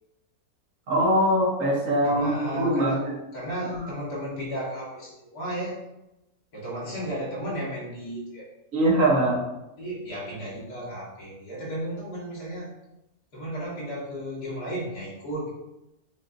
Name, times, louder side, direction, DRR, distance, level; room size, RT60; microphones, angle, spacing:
voice 1, 0.9-3.1 3.7-3.8 8.7-9.5, right 1 dB, 60° right, -2 dB, 1.3 m, -22 dB
voice 2, 2.0-3.0 3.3-5.7 6.5-8.5 9.8-12.7 13.3-15.5, right 1 dB, 80° left, -7 dB, 2.2 m, -34 dB
7.1 x 2.6 x 2.5 m, 0.92 s
omnidirectional pair, 1.6 m